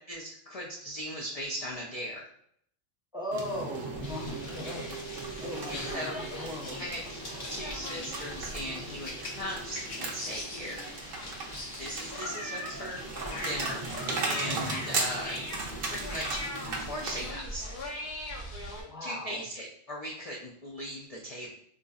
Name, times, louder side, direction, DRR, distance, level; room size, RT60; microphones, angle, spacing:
voice 1, 0.1-2.3 5.7-6.1 6.8-7.0 7.5-10.8 11.8-13.0 13.4-15.4 15.9-16.4 16.7-17.7 19.0-21.5, equal, 75° left, -3 dB, 0.3 m, -38 dB
voice 2, 3.1-4.8 5.4-6.8 18.8-19.4, left 1 dB, 5° right, -4 dB, 0.4 m, -38 dB
sound 1, 3.3-17.3, right 3 dB, 60° right, 0.7 m, -37 dB
sound 2, 3.9-18.8, left 1 dB, 50° left, 0.7 m, -40 dB
3.8 x 2.5 x 2.3 m, 0.66 s
omnidirectional pair, 1.3 m